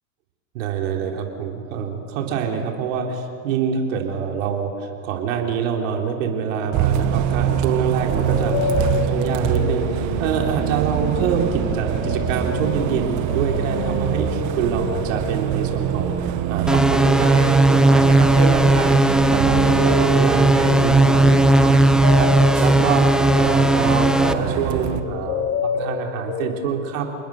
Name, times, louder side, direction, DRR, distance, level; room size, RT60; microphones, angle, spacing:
voice 1, 0.5-22.3 22.6-27.1, right 6 dB, 60° right, 2 dB, 3.9 m, -25 dB
Bus, 6.7-25.0, right 9 dB, 40° right, 1.8 m, -25 dB
sound 1, 8.2-10.5 10.8-26.5, left 5 dB, 40° left, 2.0 m, -30 dB
sound 2, 16.7-24.3, right 1 dB, ahead, 0.8 m, -16 dB
29.0 x 20.5 x 6.6 m, 2.3 s
hypercardioid pair, 105°, 43 cm